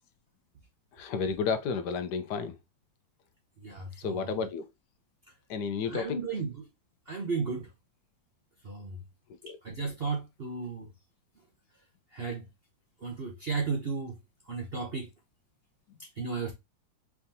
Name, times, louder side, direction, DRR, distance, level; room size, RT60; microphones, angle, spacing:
voice 1, 0.9-2.6 4.0-4.7 5.5-6.2 9.4-9.6, left 5 dB, 70° left, 1.2 m, -32 dB
voice 2, 3.6-4.4 5.9-6.5 7.1-7.7 8.6-9.0 9.6-10.9 12.1-12.4 13.0-14.2 14.5-15.1 16.2-16.5, right 4 dB, 50° right, 0.7 m, -34 dB
4.6 x 3.5 x 2.6 m
omnidirectional pair, 2.0 m